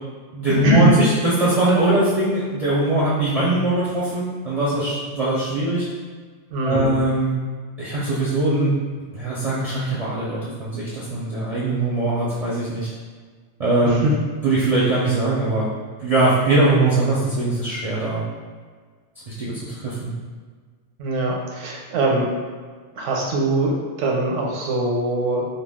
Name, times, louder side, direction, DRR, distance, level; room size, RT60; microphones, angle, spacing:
voice 1, 0.3-5.9 6.6-7.3 7.8-8.7 9.1-12.9 13.6-14.0 14.4-15.7 16.0-18.2 19.3-19.5 19.8-20.1, right 2 dB, 50° right, -8 dB, 0.4 m, -21 dB
voice 2, 6.5-6.9 13.8-14.1 21.0-22.3 23.0-25.4, right 1 dB, 80° right, -2 dB, 0.9 m, -22 dB
2.3 x 2.2 x 3.4 m, 1.5 s
omnidirectional pair, 1.3 m